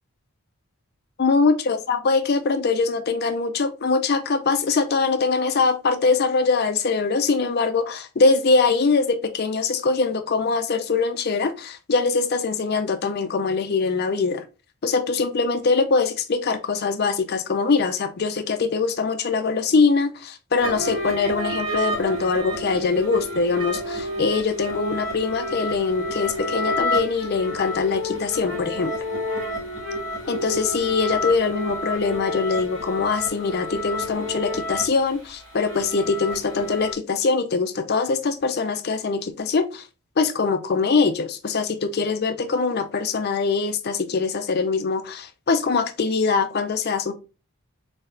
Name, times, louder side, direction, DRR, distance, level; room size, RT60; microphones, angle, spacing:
voice 1, 1.2-14.4 14.8-28.9 30.3-39.9 40.2-47.1, left 4 dB, 45° left, 0.5 m, -23 dB
sound 1, 20.6-36.9, left 1 dB, 60° right, 1.8 m, -30 dB
4.5 x 4.0 x 2.5 m
head